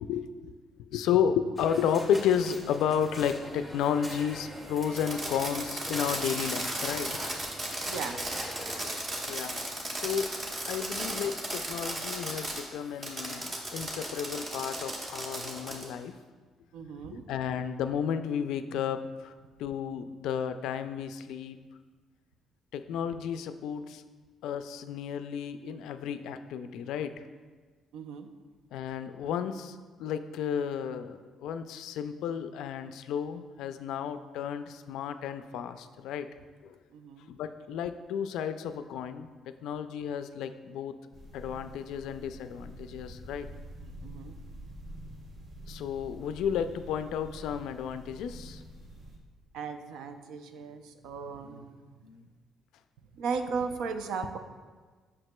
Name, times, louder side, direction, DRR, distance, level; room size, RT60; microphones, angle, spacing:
voice 1, 0.1-7.1 9.3-10.3 10.7-16.1 17.1-19.3 19.6-21.6 22.7-24.0 24.4-27.1 28.7-36.3 36.6-36.7 37.3-41.0 41.3-43.5 45.7-48.6 51.4-51.5 52.0-52.2, left 8 dB, 85° left, 10 dB, 0.3 m, -32 dB
sound 1, 1.6-9.0, equal, 5° right, 0.8 m, -43 dB
Fireworks, 4.8-12.6 13.0-15.9, right 1 dB, 35° right, 1.1 m, -35 dB
voice 2, 7.8-8.2 16.7-17.2 27.9-28.3 36.9-37.3 43.8-44.4 49.5-51.8 53.1-54.4, right 5 dB, 85° right, 7 dB, 0.4 m, -36 dB
sound 2, 41.1-49.2, right 1 dB, 60° right, 1.0 m, -46 dB
7.7 x 5.9 x 2.2 m, 1.4 s
cardioid pair, 130°, 0 cm